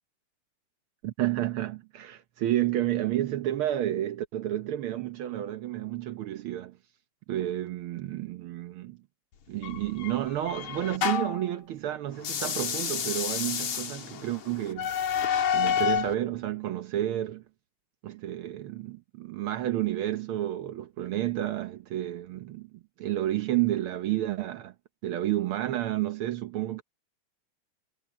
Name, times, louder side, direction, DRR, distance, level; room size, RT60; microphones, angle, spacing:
voice 1, 1.0-6.8 7.3-9.0 9.5-15.1 15.5-17.4 18.0-22.7 23.0-24.7 25.0-26.8, right 13 dB, 85° right, 1.2 m, -30 dB
sound 1, 9.6-11.5 12.2-16.1, left 8 dB, 65° left, 3.2 m, -29 dB
omnidirectional pair, 3.6 m